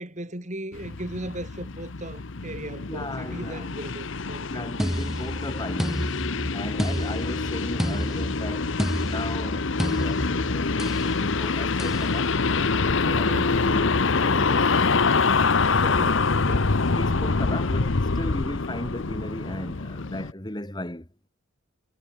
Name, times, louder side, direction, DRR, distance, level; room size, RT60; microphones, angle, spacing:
voice 1, 0.0-5.0 6.7-7.1 13.0-13.6 15.6-16.1 16.4-16.7, right 1 dB, 35° right, 3.0 m, -38 dB
sound 1, 0.7-20.3, left 4 dB, 60° left, 0.9 m, -25 dB
voice 2, 2.9-3.6 4.4-6.0 6.5-12.3 13.1-15.0 15.7-16.2 16.9-21.1, left 1 dB, 20° left, 2.1 m, -36 dB
sound 2, 4.8-11.1 11.8-12.1, equal, ahead, 2.8 m, -30 dB
head